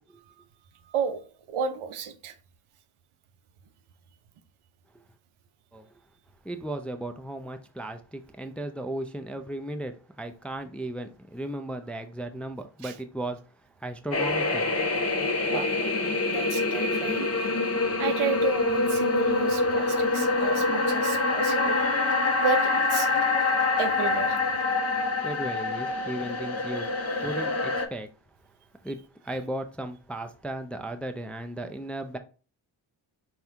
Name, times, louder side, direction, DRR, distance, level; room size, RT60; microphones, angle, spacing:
voice 1, 1.5-2.3 12.8-12.9 15.5-15.7 16.2-17.5 18.0-22.0 22.4-23.1 23.8-24.4 26.8-26.9, right 7 dB, 80° right, 0.7 m, -32 dB
voice 2, 6.4-13.4 13.8-14.7 25.2-26.9 27.2-28.1 28.8-32.2, right 1 dB, 5° left, 0.3 m, -35 dB
sound 1, 14.1-27.9, left 3 dB, 30° left, 0.7 m, -25 dB
4.2 x 2.2 x 3.6 m
cardioid pair, 65°, 49 cm